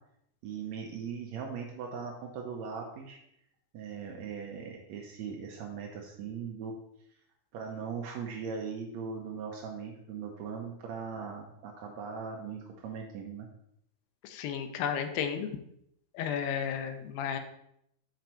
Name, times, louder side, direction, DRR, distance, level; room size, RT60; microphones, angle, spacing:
voice 1, 0.4-3.2 3.7-6.8 7.5-13.5, right 6 dB, 85° right, 0 dB, 1.5 m, -39 dB
voice 2, 14.2-15.5 16.1-17.4, left 8 dB, 80° left, 7 dB, 2.5 m, -33 dB
7.6 x 5.2 x 4.4 m, 0.75 s
omnidirectional pair, 4.3 m